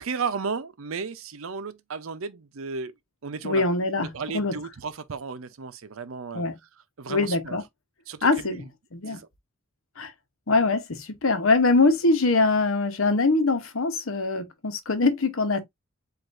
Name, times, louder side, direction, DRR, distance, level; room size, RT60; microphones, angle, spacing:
voice 1, 0.0-2.9 3.2-3.6 4.0-6.5 7.0-7.6 8.1-8.6 9.1-9.2, right 5 dB, 90° right, 0.6 m, -34 dB
voice 2, 3.4-4.5 6.3-6.6 7.1-7.6 8.2-8.7 8.9-9.2 10.0-10.1 10.5-15.6, left 3 dB, 85° left, 1.0 m, -23 dB
7.7 x 2.6 x 2.5 m
head